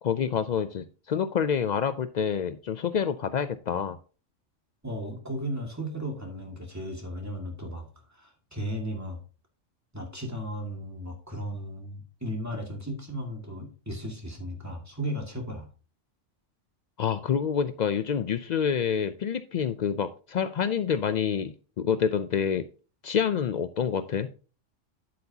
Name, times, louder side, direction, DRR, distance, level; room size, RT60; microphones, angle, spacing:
voice 1, 0.0-4.0 17.0-22.6 23.0-24.3, left 7 dB, 90° left, 11 dB, 0.3 m, -27 dB
voice 2, 4.8-9.2 9.9-15.7, equal, 15° right, 1 dB, 1.9 m, -35 dB
9.5 x 7.8 x 2.8 m, 0.36 s
omnidirectional pair, 1.3 m